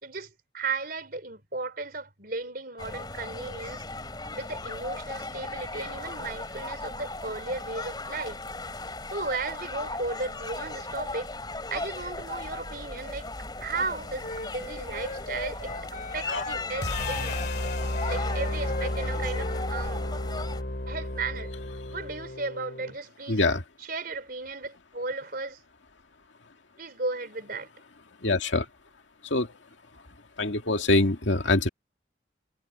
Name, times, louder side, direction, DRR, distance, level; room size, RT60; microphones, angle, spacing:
voice 1, 0.0-3.8 4.4-8.4 9.1-11.3 11.7-13.3 13.6-17.4 18.0-20.0 20.9-21.5 21.9-23.4 23.9-25.6 26.8-27.7, right 3 dB, 50° right, 4.4 m, -35 dB
sound 1, 2.8-20.6, left 2 dB, 20° left, 2.9 m, -37 dB
Wind instrument woodwind instrument, 14.2-19.7, left 2 dB, 40° left, 7.7 m, -38 dB
sound 2, 16.8-23.0, left 1 dB, 55° left, 2.8 m, -32 dB
voice 2, 23.3-23.6 28.2-28.7 29.2-29.6 30.4-31.7, left 2 dB, 75° left, 2.1 m, -24 dB
head